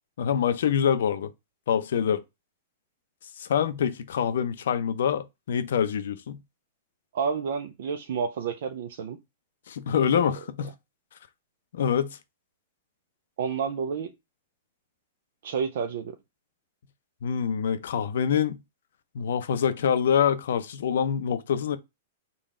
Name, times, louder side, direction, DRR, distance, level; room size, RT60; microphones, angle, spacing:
voice 1, 0.2-1.3 1.7-2.2 3.4-6.4 9.7-10.7 11.7-12.2 17.2-18.6 19.1-21.8, left 8 dB, 75° left, 0.5 m, -25 dB
voice 2, 7.1-9.2 10.1-10.3 13.4-14.1 15.4-16.2, right 6 dB, 70° right, 0.4 m, -30 dB
3.8 x 2.2 x 3.6 m
hypercardioid pair, 130°, 0 cm